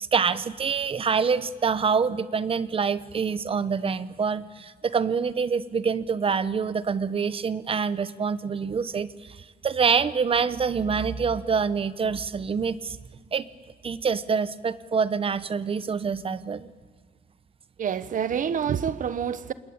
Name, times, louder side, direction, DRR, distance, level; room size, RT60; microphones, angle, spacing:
voice 1, 0.0-13.0 13.3-13.4 13.8-16.7, right 6 dB, 35° right, 0.9 m, -26 dB
voice 2, 17.8-19.5, right 8 dB, 55° right, 1.1 m, -27 dB
27.5 x 21.0 x 8.8 m
cardioid pair, 150°, 17 cm